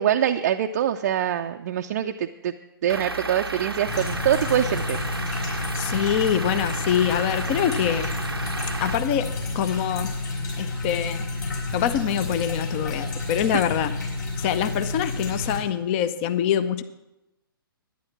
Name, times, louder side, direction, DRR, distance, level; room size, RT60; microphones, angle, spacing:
voice 1, 0.0-2.5 2.8-5.0, right 10 dB, 40° right, 5 dB, 0.5 m, -24 dB
Truck / Idling, 2.9-9.0, right 3 dB, 90° right, 0.7 m, -33 dB
sound 1, 3.9-15.6, left 3 dB, 50° left, 4.5 m, -30 dB
voice 2, 5.8-8.1 8.8-10.1 10.6-11.2 11.7-13.9 14.4-16.8, left 9 dB, 30° left, 12 dB, 0.7 m, -25 dB
11.5 x 10.0 x 5.8 m, 0.94 s
figure-of-eight pair, 125°, 12 cm